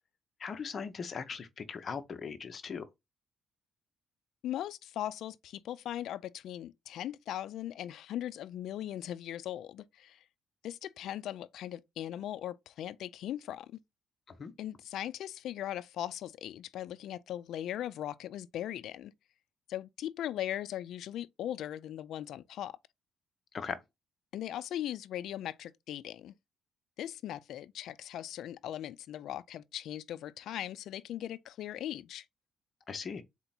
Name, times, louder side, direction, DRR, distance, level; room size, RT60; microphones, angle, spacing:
voice 1, 0.4-2.8 14.3-14.5 23.5-23.8 32.9-33.2, left 6 dB, 45° left, 0.9 m, -39 dB
voice 2, 4.4-10.2 10.6-13.8 14.6-19.1 19.7-22.8 24.3-26.3 27.0-32.3, left 12 dB, 75° left, 0.3 m, -39 dB
4.3 x 2.9 x 4.0 m
cardioid pair, 90°, 0 cm